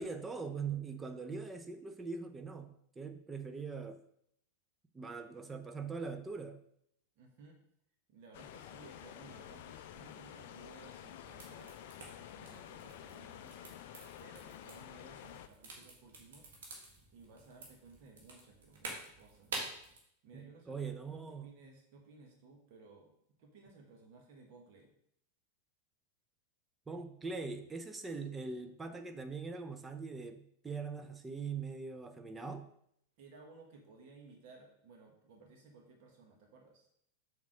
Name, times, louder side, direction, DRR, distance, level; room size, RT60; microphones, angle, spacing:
voice 1, 0.0-4.0 4.9-6.6 20.3-21.5 26.9-32.7, right 4 dB, 15° right, 7 dB, 0.7 m, -42 dB
voice 2, 7.2-7.6 8.1-16.8 17.1-19.7 20.2-23.1 23.4-24.9 33.2-36.9, right 3 dB, 45° right, 1 dB, 1.4 m, -58 dB
sound 1, 8.3-15.5, left 10 dB, 50° left, 0.5 m, -50 dB
sound 2, 11.2-20.0, right 3 dB, 60° right, 1.6 m, -49 dB
7.2 x 3.7 x 4.9 m, 0.71 s
figure-of-eight pair, 90°, 0 cm